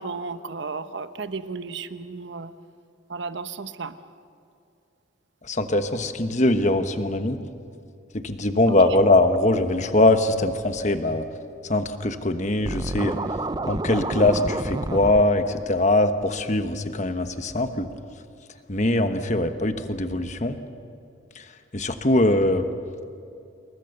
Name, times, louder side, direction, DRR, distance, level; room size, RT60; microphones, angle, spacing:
voice 1, 0.0-2.5 3.1-3.9 8.7-8.8, right 4 dB, 60° right, 11 dB, 1.0 m, -33 dB
voice 2, 5.4-7.4 8.1-11.3 11.6-13.2 13.6-17.9 18.7-20.6 21.3-21.4 21.7-22.7, left 2 dB, 35° left, 8 dB, 1.2 m, -22 dB
Scratching (performance technique), 12.6-15.2, right 2 dB, 20° right, 0.5 m, -29 dB
28.0 x 21.5 x 6.8 m, 2.5 s
head